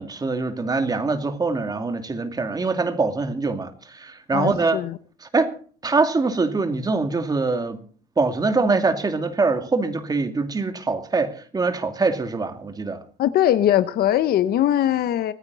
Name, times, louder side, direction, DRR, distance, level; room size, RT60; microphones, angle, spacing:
voice 1, 0.0-4.8 5.2-5.5 5.8-7.8 8.2-13.0, right 3 dB, 25° right, 2.5 m, -23 dB
voice 2, 4.3-5.0 13.2-15.3, left 11 dB, 65° left, 0.9 m, -21 dB
25.5 x 9.6 x 4.1 m
cardioid pair, 110°, 17 cm